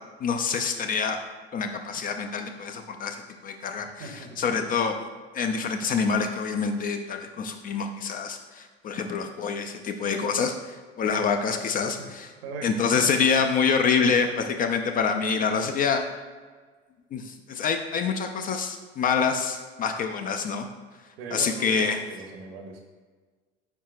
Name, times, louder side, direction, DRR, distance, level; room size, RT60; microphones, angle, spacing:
voice 1, 0.2-1.2 1.5-4.9 5.3-12.3 12.6-16.0 17.1-20.7 21.3-22.0, left 5 dB, 30° left, 5 dB, 0.3 m, -26 dB
voice 2, 4.0-4.9 12.4-13.0 21.2-22.8, right 4 dB, 70° right, 2 dB, 0.9 m, -39 dB
4.6 x 4.5 x 2.4 m, 1.4 s
hypercardioid pair, 70°, 31 cm